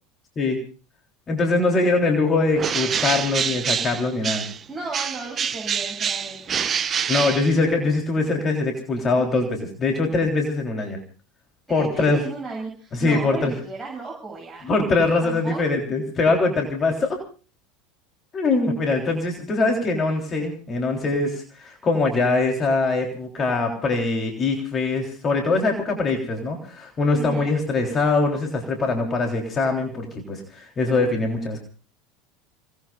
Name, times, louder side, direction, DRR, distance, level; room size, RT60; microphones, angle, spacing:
voice 1, 1.3-4.5 7.1-11.0 11.7-12.2 12.9-13.5 14.6-17.2 18.3-31.6, left 3 dB, 30° left, 2 dB, 3.5 m, -22 dB
Bird, 2.6-4.6 4.9-8.0, right 7 dB, 30° right, 0.9 m, -26 dB
voice 2, 4.7-6.6 11.7-14.7 15.2-15.6 27.1-27.5, right 3 dB, 15° right, -3 dB, 7.7 m, -34 dB
29.5 x 19.0 x 2.4 m, 0.36 s
figure-of-eight pair, 75°, 0 cm